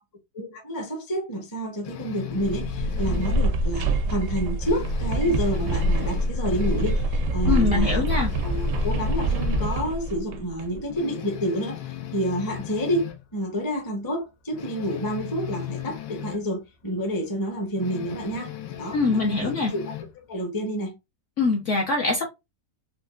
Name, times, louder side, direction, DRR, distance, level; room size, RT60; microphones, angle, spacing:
voice 1, 0.3-8.1 8.4-19.9 20.3-21.0, equal, 20° left, 0.6 m, -29 dB
sound 1, 1.8-3.5 3.9-4.0 4.4-7.1 7.5-7.6 8.0-9.9 10.4-10.5 10.9-13.2 14.5-16.4 17.8-20.2, left 12 dB, 90° left, 1.3 m, -37 dB
sound 2, 2.3-10.8, right 1 dB, 70° right, 0.7 m, -25 dB
voice 2, 7.5-8.3 18.9-19.7 21.4-22.2, left 4 dB, 60° left, 0.9 m, -23 dB
4.4 x 2.2 x 2.4 m
omnidirectional pair, 1.9 m